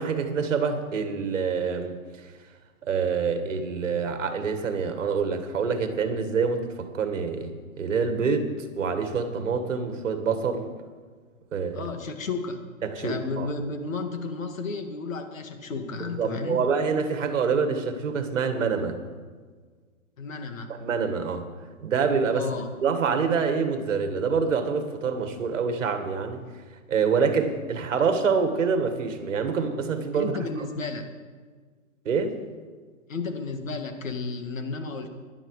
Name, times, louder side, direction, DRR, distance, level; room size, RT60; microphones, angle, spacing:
voice 1, 0.0-2.0 2.8-10.7 11.5-11.9 12.8-13.5 16.2-19.0 20.7-21.5 21.8-22.5 22.8-26.4 26.9-30.7 32.1-32.4, right 5 dB, 60° right, 8 dB, 1.9 m, -26 dB
voice 2, 11.7-12.6 13.0-16.6 20.2-20.7 22.3-22.7 30.1-31.1 33.1-35.1, left 4 dB, 65° left, 6 dB, 2.1 m, -32 dB
17.0 x 11.5 x 4.9 m, 1.5 s
hypercardioid pair, 175°, 42 cm